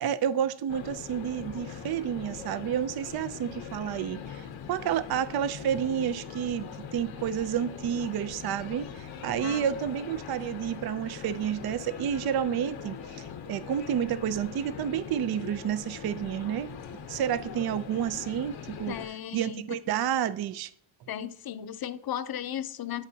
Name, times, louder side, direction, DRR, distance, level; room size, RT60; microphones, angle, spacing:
voice 1, 0.0-16.8 17.1-18.9 19.3-20.7, right 9 dB, 55° right, 0.5 m, -30 dB
sound 1, 0.7-19.1, left 7 dB, 85° left, 0.9 m, -42 dB
voice 2, 9.4-9.8 18.9-19.8 21.1-23.1, left 10 dB, 55° left, 0.6 m, -36 dB
11.0 x 5.2 x 2.8 m
cardioid pair, 75°, 45 cm